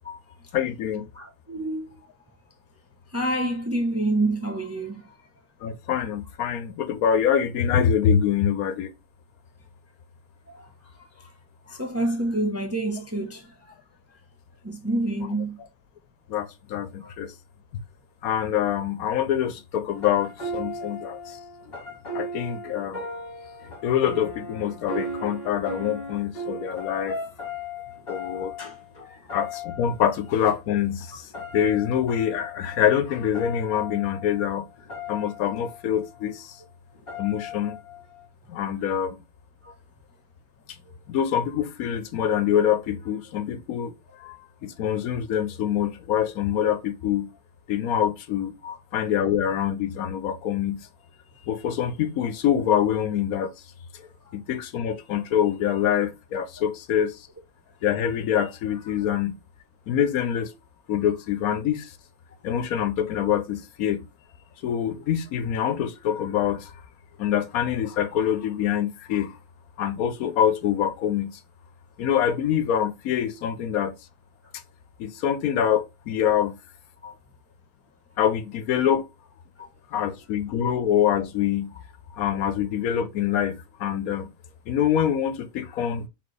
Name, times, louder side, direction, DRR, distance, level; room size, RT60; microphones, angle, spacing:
voice 1, 0.5-1.1 5.6-8.9 16.3-17.3 18.2-21.4 22.1-23.0 23.8-27.2 28.1-28.5 29.3-34.7 35.1-36.6 37.2-37.8 38.5-39.2 41.1-43.9 44.2-44.4 44.6-47.3 47.7-48.5 48.9-50.9 51.5-53.5 54.0-54.1 54.3-57.3 57.8-59.3 59.9-60.5 60.9-61.9 62.4-64.0 64.6-66.7 67.2-69.3 69.8-71.4 72.0-73.9 75.0-76.6 78.2-79.1 79.9-81.8 82.1-84.3 84.7-86.1, left 9 dB, 80° left, 1.1 m, -25 dB
voice 2, 1.1-1.9 3.1-5.1 10.5-10.7 11.7-13.5 14.6-15.6 17.0-17.1 20.8-20.9 29.0-29.2 39.6-39.7 48.6-48.7 77.0-77.2 79.6-79.7, right 1 dB, 15° right, 0.5 m, -28 dB
sound 1, 19.9-30.4 30.9-36.3 36.9-38.3, left 1 dB, 40° left, 1.8 m, -37 dB
4.3 x 3.7 x 3.2 m
omnidirectional pair, 1.5 m